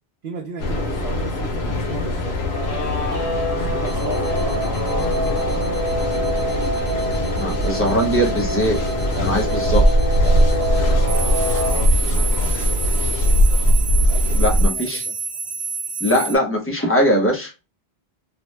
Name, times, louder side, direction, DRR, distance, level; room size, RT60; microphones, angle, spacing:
voice 1, 0.2-2.4 3.6-5.7 9.1-9.6 10.2-10.7 14.1-15.1, right 3 dB, 60° right, 1 dB, 0.8 m, -35 dB
Mechanical fan, 0.6-14.7, equal, 90° left, 1.0 m, -21 dB
Guitar, 2.4-11.8, equal, 65° left, 1.3 m, -27 dB
sound 1, 3.9-16.4, right 5 dB, 90° right, 0.9 m, -31 dB
voice 2, 7.4-8.8 9.2-9.8 14.3-15.0 16.0-17.5, equal, 15° left, 1 dB, 0.6 m, -20 dB
2.8 x 2.1 x 3.2 m, 0.29 s
omnidirectional pair, 1.0 m